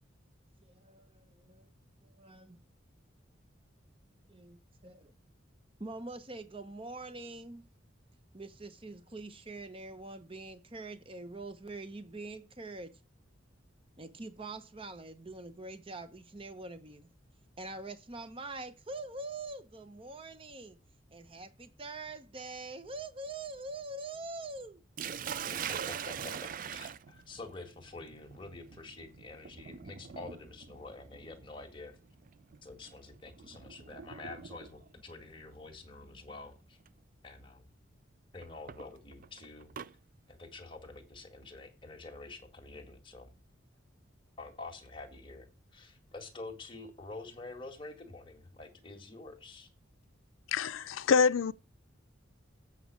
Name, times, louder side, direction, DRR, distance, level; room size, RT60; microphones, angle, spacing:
voice 1, 0.6-1.6 2.0-2.6 4.3-5.1 5.8-7.6 8.3-12.9 14.0-17.1 17.6-20.8 21.1-24.8, right 2 dB, 30° right, 0.8 m, -44 dB
Sink (filling or washing), 25.0-34.9 36.0-36.3 36.9-37.0 38.4-39.9, right 8 dB, 45° right, 0.4 m, -43 dB
voice 2, 25.9-32.0 32.6-36.8 37.2-37.7 38.3-39.7 40.3-43.3 44.4-45.5 45.7-49.7, left 3 dB, 25° left, 1.9 m, -47 dB
voice 3, 50.5-51.5, left 6 dB, 90° left, 0.4 m, -26 dB
8.2 x 5.8 x 6.3 m
head